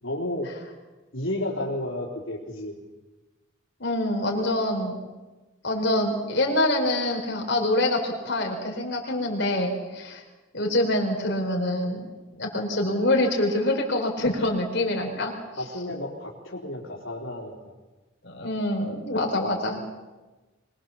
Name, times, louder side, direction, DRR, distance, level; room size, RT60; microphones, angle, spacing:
voice 1, 0.0-0.5 1.1-2.8 14.9-15.1 15.6-17.6 19.7-19.9, left 1 dB, 85° left, -2 dB, 3.8 m, -32 dB
voice 2, 3.8-4.9 5.6-10.2 10.5-12.0 12.4-15.3 18.2-19.8, left 1 dB, 60° left, 1 dB, 4.5 m, -25 dB
24.5 x 21.0 x 7.3 m, 1.2 s
head